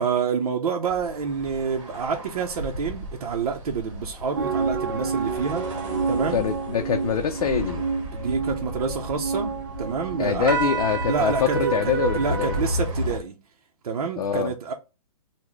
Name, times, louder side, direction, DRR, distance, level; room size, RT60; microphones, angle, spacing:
voice 1, 0.0-5.7 6.1-6.4 8.1-9.5 9.8-10.7 11.0-13.4 13.8-14.7, right 5 dB, 75° right, 0.7 m, -28 dB
sound 1, 0.8-13.2, equal, 55° right, 1.3 m, -35 dB
sound 2, 4.3-12.6, right 5 dB, 35° right, 0.4 m, -29 dB
voice 2, 6.3-7.8 10.2-12.6 14.2-14.5, left 7 dB, 85° left, 0.5 m, -24 dB
3.9 x 2.1 x 3.0 m
hypercardioid pair, 175°, 19 cm